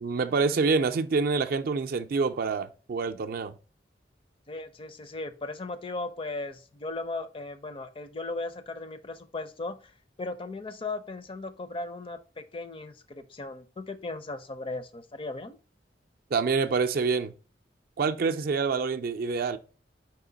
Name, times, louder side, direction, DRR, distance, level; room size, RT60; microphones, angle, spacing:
voice 1, 0.0-3.5 16.3-17.3 18.0-19.6, right 4 dB, 55° right, 0.4 m, -26 dB
voice 2, 4.5-9.9 10.2-15.6, left 2 dB, 30° left, 0.4 m, -37 dB
4.7 x 2.9 x 3.8 m
head